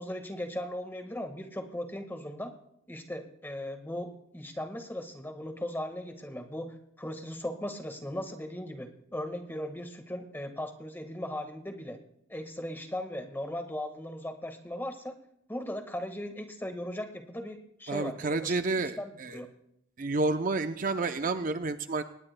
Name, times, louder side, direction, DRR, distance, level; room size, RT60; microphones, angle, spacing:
voice 1, 0.0-2.5 2.9-12.0 12.3-15.2 15.5-19.5, left 1 dB, 10° left, 4 dB, 1.5 m, -38 dB
voice 2, 17.9-19.4 20.0-22.0, right 3 dB, 40° right, 9 dB, 0.5 m, -30 dB
24.5 x 20.0 x 2.2 m, 0.76 s
head